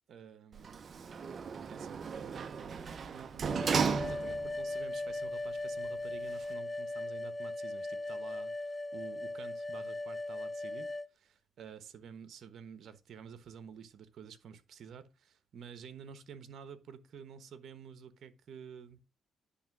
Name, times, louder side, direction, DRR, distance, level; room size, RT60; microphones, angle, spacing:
voice 1, 0.1-0.8 1.7-19.0, right 7 dB, 65° right, 1.1 m, -50 dB
Sliding door, 0.5-4.7 5.1-5.2, right 6 dB, 45° right, 0.6 m, -35 dB
sound 1, 3.5-11.1, left 2 dB, 15° left, 0.5 m, -38 dB
10.0 x 3.5 x 6.0 m
cardioid pair, 90°, 0 cm